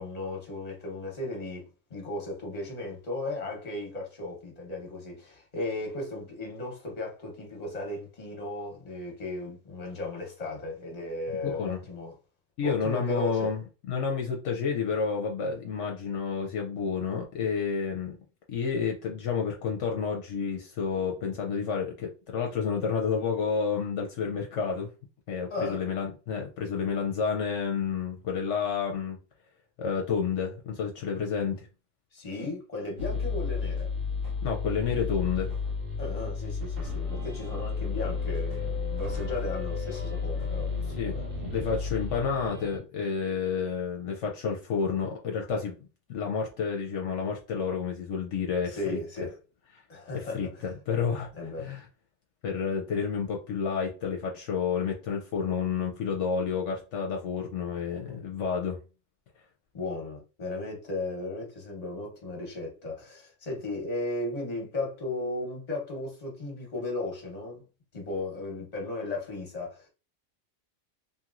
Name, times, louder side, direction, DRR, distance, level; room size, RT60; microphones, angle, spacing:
voice 1, 0.0-12.1 12.6-13.5 25.5-25.8 32.1-33.9 36.0-41.4 48.7-49.3 49.9-50.7 51.3-51.7 59.7-67.6 67.9-69.9, left 2 dB, 35° left, 1.1 m, -36 dB
voice 2, 11.4-11.8 12.6-18.1 18.5-24.9 25.3-29.2 29.8-31.7 34.4-35.5 41.0-41.2 41.5-45.7 46.1-49.3 50.1-51.3 51.6-51.9 52.4-58.8, left 6 dB, 70° left, 0.9 m, -30 dB
sound 1, 33.0-42.8, left 4 dB, 85° right, 1.1 m, -32 dB
2.9 x 2.8 x 2.5 m
omnidirectional pair, 1.3 m